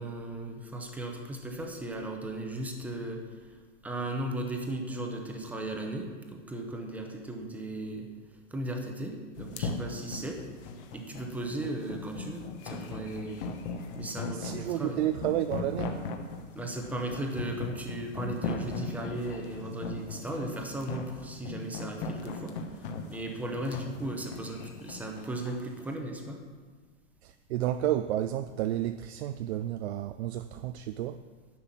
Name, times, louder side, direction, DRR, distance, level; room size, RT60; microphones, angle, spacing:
voice 1, 0.0-3.4 3.8-8.1 8.5-10.4 10.9-13.6 13.9-15.0 16.5-26.4, right 1 dB, 5° right, 3 dB, 0.8 m, -36 dB
sound 1, 9.4-25.6, left 4 dB, 45° left, 1.2 m, -38 dB
voice 2, 14.3-16.2 27.2-31.2, right 12 dB, 60° right, 9 dB, 0.5 m, -31 dB
11.0 x 5.6 x 7.4 m, 1.4 s
supercardioid pair, 155°, 37 cm